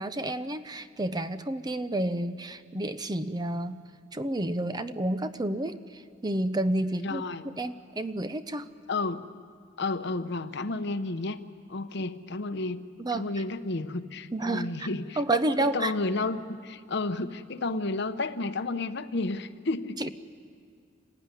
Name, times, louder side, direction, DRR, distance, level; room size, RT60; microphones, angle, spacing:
voice 1, 0.0-3.8 4.1-8.7 13.0-13.3 14.3-14.9 15.2-15.9 20.0-20.1, right 1 dB, 20° right, 11 dB, 0.6 m, -30 dB
voice 2, 6.9-7.5 8.9-9.2 9.8-11.4 11.7-12.8 13.1-20.1, left 3 dB, 60° left, 10 dB, 0.9 m, -32 dB
26.5 x 16.0 x 9.9 m, 2.1 s
head